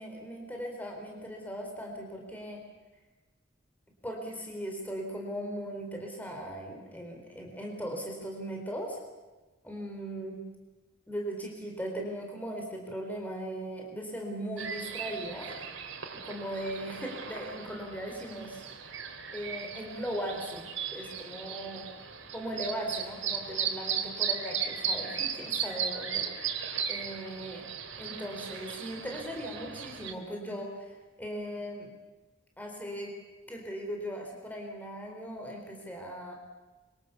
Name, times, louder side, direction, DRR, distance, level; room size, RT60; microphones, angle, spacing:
voice 1, 0.0-2.6 4.0-9.0 9.6-10.4 11.1-15.7 16.2-18.9 19.3-20.7 20.9-21.9 22.3-27.6 28.0-31.9 32.6-33.1 33.5-36.3, equal, 10° left, 0 dB, 3.8 m, -38 dB
sound 1, 14.6-30.1, right 7 dB, 80° right, 2.9 m, -36 dB
26.0 x 24.0 x 7.0 m, 1.2 s
head